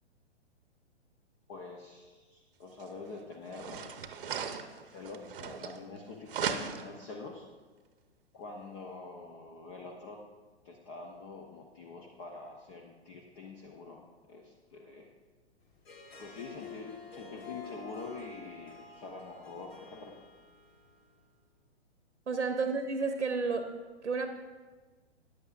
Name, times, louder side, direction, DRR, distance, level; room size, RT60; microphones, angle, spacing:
voice 1, 1.5-3.9 4.8-7.5 8.3-10.2 10.6-15.1 16.2-20.3, left 4 dB, 25° left, 2 dB, 0.7 m, -46 dB
sound 1, 2.8-2.9 3.5-6.0 6.3-7.0, right 7 dB, 50° right, 0.8 m, -37 dB
Harp, 15.7-21.2, left 3 dB, 60° left, 1.9 m, -50 dB
voice 2, 22.3-23.7 24.0-24.3, right 4 dB, 80° right, 7 dB, 0.8 m, -31 dB
14.0 x 10.0 x 2.5 m, 1.3 s
figure-of-eight pair, 115°, 34 cm